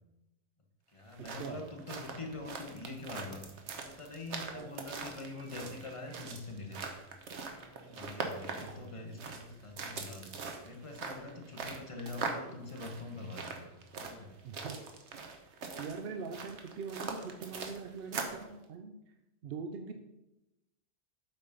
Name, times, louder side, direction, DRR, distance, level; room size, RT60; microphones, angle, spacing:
voice 1, 0.9-3.4 3.8-6.8 7.4-10.3 10.6-13.7 14.0-14.4, left 2 dB, 30° left, 2 dB, 1.1 m, -44 dB
sound 1, 1.0-18.5, right 4 dB, 80° right, 1.2 m, -42 dB
voice 2, 14.4-14.8 15.8-19.0 19.4-19.9, right 5 dB, 65° right, 5 dB, 0.8 m, -42 dB
7.9 x 4.2 x 5.2 m, 0.93 s
omnidirectional pair, 1.1 m